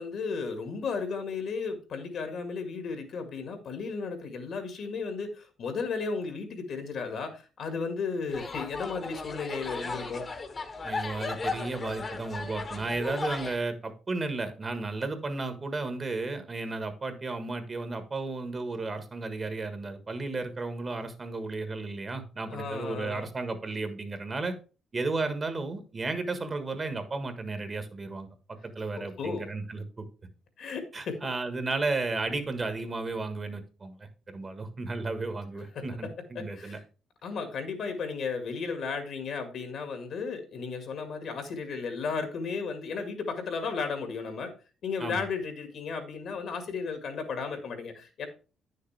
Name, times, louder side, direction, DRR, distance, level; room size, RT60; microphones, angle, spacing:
voice 1, 0.0-10.3 22.5-23.3 29.0-29.4 30.6-31.2 35.8-35.9 36.4-36.8 37.2-44.5 44.8-48.3, left 5 dB, 65° left, 7 dB, 1.9 m, -34 dB
sound 1, 8.3-13.6, left 4 dB, 35° left, 1.2 m, -36 dB
voice 2, 10.8-24.6 24.9-28.3 28.6-29.9 30.9-36.8 45.0-45.3, right 3 dB, 30° right, 8 dB, 1.4 m, -33 dB
9.5 x 6.6 x 3.3 m, 0.35 s
cardioid pair, 90°, 0 cm